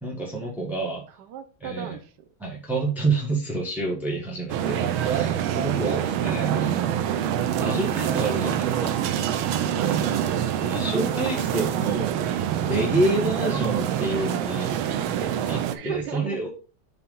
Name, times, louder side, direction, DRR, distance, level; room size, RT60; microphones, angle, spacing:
voice 1, 0.0-1.0 1.6-2.0 2.4-7.2 7.6-9.0 10.6-12.1 12.6-14.8 15.5-16.5, right 2 dB, ahead, -2 dB, 0.8 m, -28 dB
voice 2, 1.1-2.1 9.7-10.3 15.7-16.4, right 8 dB, 65° right, 8 dB, 1.2 m, -37 dB
sound 1, 4.5-15.7, right 10 dB, 80° right, 1.4 m, -25 dB
5.6 x 4.1 x 5.4 m, 0.37 s
omnidirectional pair, 2.3 m